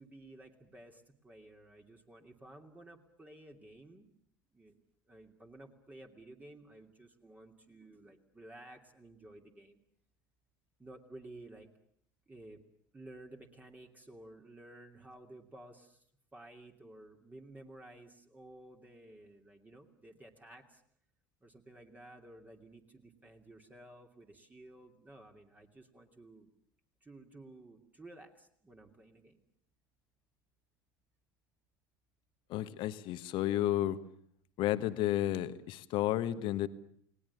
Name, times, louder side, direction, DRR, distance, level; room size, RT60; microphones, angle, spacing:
voice 1, 0.0-4.1 4.5-4.7 5.1-9.8 10.8-11.7 12.3-12.6 12.9-16.1 16.3-20.8 21.4-26.5 27.0-29.4, right 1 dB, 15° right, 2 dB, 2.7 m, -54 dB
voice 2, 32.5-34.0 34.6-36.7, left 13 dB, 50° left, 12 dB, 1.4 m, -32 dB
30.0 x 19.5 x 7.2 m, 0.66 s
figure-of-eight pair, 70°, 11 cm